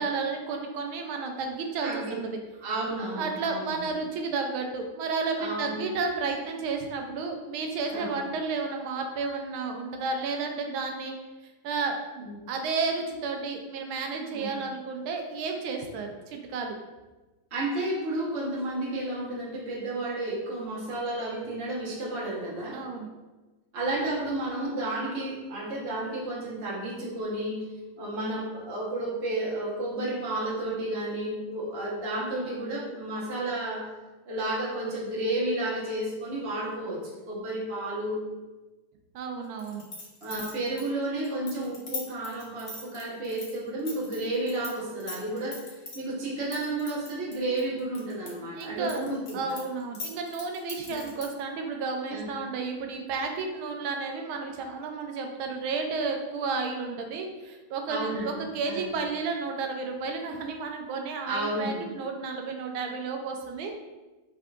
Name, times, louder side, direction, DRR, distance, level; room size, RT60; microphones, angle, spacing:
voice 1, 0.0-2.4 3.2-11.1 11.6-16.8 22.7-23.1 39.1-39.9 48.6-49.0 49.3-63.8, right 4 dB, 85° right, 3 dB, 1.4 m, -32 dB
voice 2, 1.8-2.2 2.6-3.8 5.4-5.7 7.9-8.2 12.2-12.3 14.3-14.6 17.5-22.8 23.7-27.6 28.0-33.9 34.3-38.2 40.2-49.6 50.9-51.0 52.1-52.3 57.9-58.9 61.2-61.8, right 1 dB, 40° right, -5 dB, 1.2 m, -32 dB
sound 1, 39.6-44.7 45.0-46.0 46.5-48.3 48.6-51.4, left 3 dB, 45° left, 0.7 m, -39 dB
5.7 x 3.7 x 2.4 m, 1.2 s
omnidirectional pair, 2.2 m